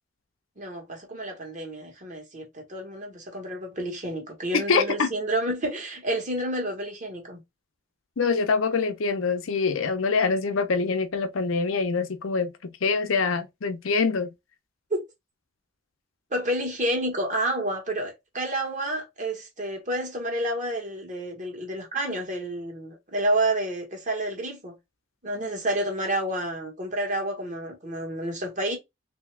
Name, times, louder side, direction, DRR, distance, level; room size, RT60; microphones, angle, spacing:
voice 1, 0.6-7.4 14.9-15.0 16.3-24.8 25.2-28.8, right 1 dB, 40° right, 1.3 m, -29 dB
voice 2, 4.5-5.1 8.2-12.5 12.8-14.3, left 4 dB, 85° left, 0.6 m, -24 dB
3.3 x 2.8 x 3.2 m
head